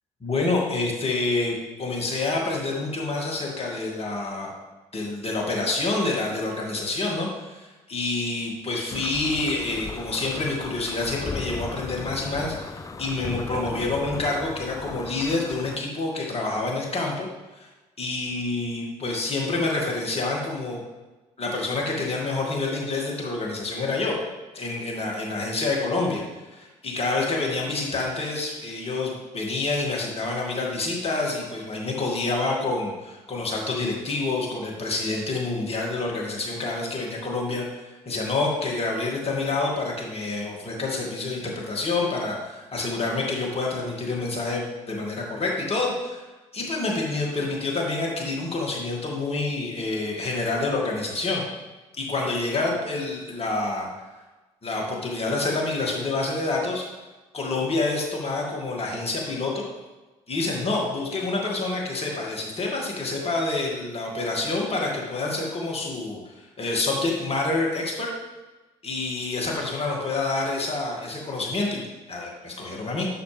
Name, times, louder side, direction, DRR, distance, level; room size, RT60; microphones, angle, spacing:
voice 1, 0.2-4.5 4.9-17.3 17.5-17.7 18.0-20.8 21.4-24.2 24.5-26.2 26.5-46.2 46.5-51.4 52.0-53.9 54.6-56.9 57.3-59.6 60.3-66.2 66.6-68.1 68.8-71.8 72.1-73.1, left 3 dB, 40° left, -1 dB, 2.3 m, -27 dB
sound 1, 8.9-15.8, left 4 dB, 20° left, 0.5 m, -37 dB
9.4 x 6.5 x 3.5 m, 1.2 s
hypercardioid pair, 55°, 16 cm